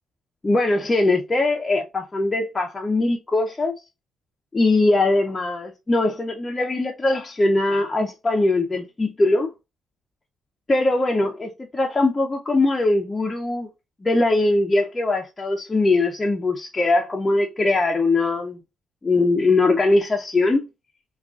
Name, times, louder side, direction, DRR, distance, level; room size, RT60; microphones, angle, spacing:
voice 1, 0.4-3.7 4.5-9.5 10.7-13.7 14.0-18.6 19.0-20.7, left 2 dB, 20° left, 0.5 m, -21 dB
3.6 x 2.3 x 2.3 m
cardioid pair, 90°, 0 cm